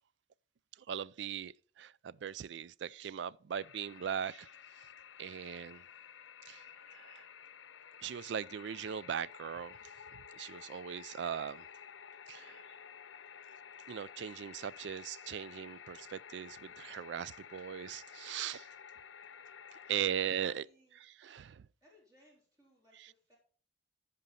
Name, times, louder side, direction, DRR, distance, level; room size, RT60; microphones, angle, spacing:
voice 1, 0.8-4.5 4.8-4.9 5.2-5.8 6.5-7.3 8.0-11.7 12.3-12.6 13.9-18.7 19.7-20.7 20.9-21.7 23.0-23.1, right 8 dB, 65° right, 0.3 m, -40 dB
sound 1, 3.5-20.5, left 8 dB, 90° left, 0.6 m, -52 dB
voice 2, 20.5-21.0 21.8-23.4, equal, 20° right, 3.5 m, -67 dB
14.5 x 5.3 x 4.1 m
head